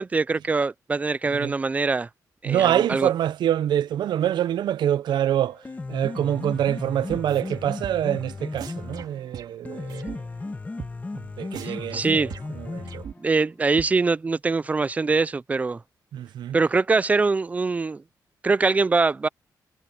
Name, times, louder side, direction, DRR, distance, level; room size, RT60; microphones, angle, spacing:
voice 1, 0.0-2.1 2.4-3.1 11.6-12.3 13.2-15.8 16.5-18.0 18.4-19.3, right 4 dB, 20° right, 0.3 m, -23 dB
voice 2, 2.4-5.6 5.9-10.1 11.4-12.3 12.6-13.0 16.1-16.6, right 11 dB, 90° right, 0.5 m, -25 dB
Piano, 5.5-13.4, left 3 dB, 20° left, 1.4 m, -35 dB
sound 1, 7.1-7.6 7.8-8.2 8.6-10.2 10.4-10.5 10.8-10.9 11.2-11.3 11.5-13.5 13.8-13.9, right 8 dB, 70° right, 2.3 m, -40 dB
wide cardioid pair, 145°, 7 cm